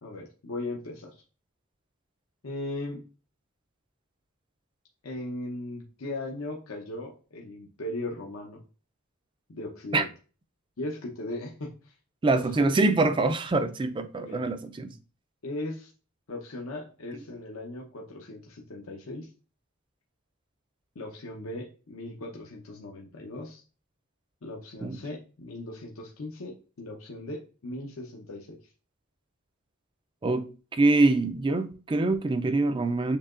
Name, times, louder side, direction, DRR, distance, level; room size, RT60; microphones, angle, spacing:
voice 1, 0.0-1.2 2.4-3.0 5.0-8.6 9.5-10.1 10.8-11.9 12.3-12.8 14.2-14.5 15.4-15.9 16.3-19.3 20.9-23.6 24.4-28.6, left 2 dB, 80° left, 0.8 m, -38 dB
voice 2, 12.2-14.9 24.8-25.0 30.2-30.5 30.7-33.2, right 2 dB, 25° right, 0.4 m, -24 dB
6.8 x 2.8 x 2.4 m
head